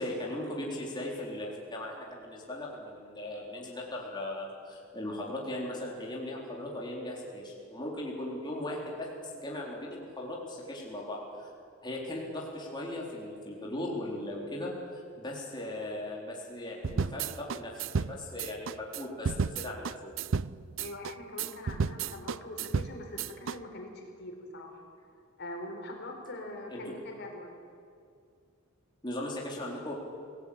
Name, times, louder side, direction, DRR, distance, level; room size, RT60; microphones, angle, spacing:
voice 1, 0.0-11.5 11.8-20.2 26.7-27.0 29.0-29.9, left 1 dB, 20° left, -3 dB, 4.0 m, -38 dB
sound 1, 16.8-23.6, right 5 dB, 65° right, 0.5 m, -33 dB
voice 2, 20.8-24.8 25.4-27.6, left 1 dB, 55° left, 2 dB, 4.5 m, -43 dB
27.5 x 18.0 x 8.7 m, 2.3 s
head